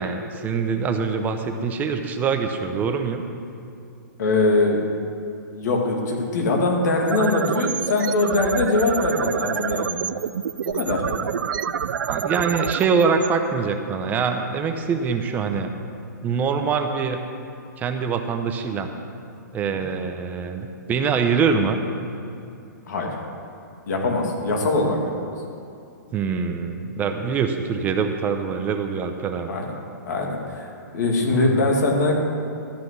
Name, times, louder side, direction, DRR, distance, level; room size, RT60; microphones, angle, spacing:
voice 1, 0.0-3.2 11.4-11.7 12.1-15.7 16.2-17.2 17.8-18.9 19.5-21.8 26.1-29.6 31.3-31.5, right 5 dB, 15° right, 5 dB, 0.7 m, -24 dB
voice 2, 4.2-4.8 5.5-10.0 10.7-11.0 19.7-19.8 22.9-23.1 23.9-25.0 29.5-29.6 30.1-30.7 30.9-32.2, left 2 dB, 65° left, 0 dB, 2.6 m, -22 dB
sound 1, 7.0-14.0, right 8 dB, 90° right, 0.4 m, -28 dB
13.0 x 6.0 x 8.5 m, 2.6 s
hypercardioid pair, 155°, 10 cm